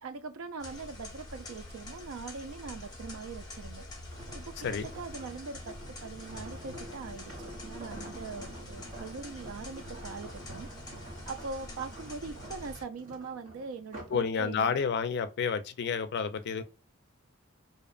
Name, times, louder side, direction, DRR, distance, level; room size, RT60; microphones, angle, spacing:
voice 1, 0.0-3.9 4.3-5.8 6.0-10.7 11.3-14.8, right 4 dB, 80° right, 0.4 m, -42 dB
sound 1, 0.6-12.8, left 1 dB, 20° left, 0.9 m, -46 dB
sound 2, 4.1-14.3 14.7-15.0, right 1 dB, 40° right, 0.9 m, -47 dB
voice 2, 14.1-16.6, left 6 dB, 55° left, 0.4 m, -30 dB
2.6 x 2.1 x 2.3 m
head